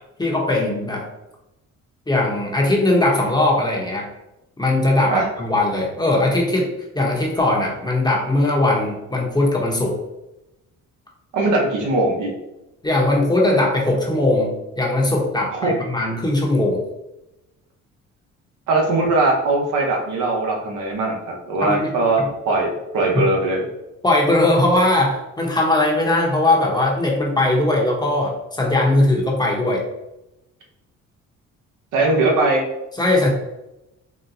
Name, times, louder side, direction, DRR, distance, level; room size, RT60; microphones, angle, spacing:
voice 1, 0.2-1.1 2.1-4.1 4.6-10.0 12.8-16.8 21.6-22.3 23.1-23.2 24.0-29.8 32.9-33.3, left 2 dB, 15° left, -1 dB, 0.8 m, -19 dB
voice 2, 11.3-12.3 15.5-15.7 18.7-23.6 31.9-32.6, right 2 dB, 80° right, 0 dB, 0.9 m, -20 dB
4.1 x 2.1 x 2.6 m, 0.93 s
cardioid pair, 90°, 30 cm